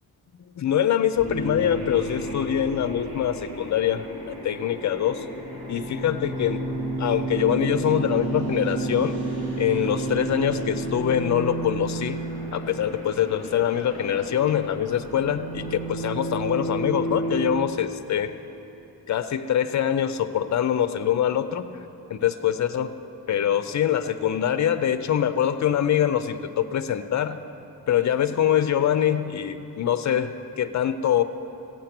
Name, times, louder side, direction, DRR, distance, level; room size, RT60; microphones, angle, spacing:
voice 1, 0.6-5.2 5.7-6.7 7.0-9.1 9.6-12.2 12.5-18.3 19.1-21.7 22.1-22.9 23.3-27.4 27.9-31.2, left 10 dB, 50° left, 11 dB, 0.6 m, -24 dB
sound 1, 1.2-17.5, right 2 dB, 20° right, 2.6 m, -31 dB
15.5 x 8.7 x 6.0 m, 3.0 s
wide cardioid pair, 125°, 37 cm